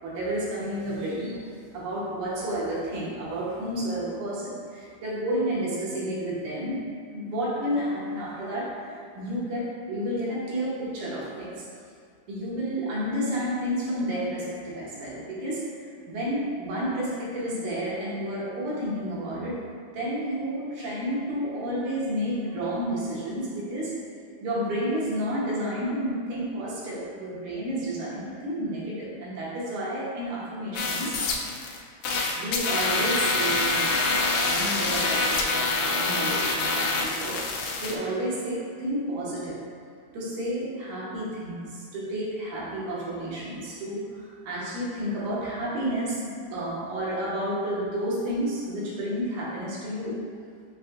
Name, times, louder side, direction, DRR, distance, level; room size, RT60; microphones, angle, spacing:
voice 1, 0.0-6.8 7.1-11.7 12.3-15.8 16.1-19.6 19.9-23.9 24.4-31.1 32.3-39.6 40.1-50.2, equal, 90° right, -7 dB, 2.5 m, -31 dB
sound 1, 30.8-31.8 32.0-38.0, left 3 dB, 85° left, 2.0 m, -26 dB
7.5 x 2.6 x 2.4 m, 2.2 s
omnidirectional pair, 3.5 m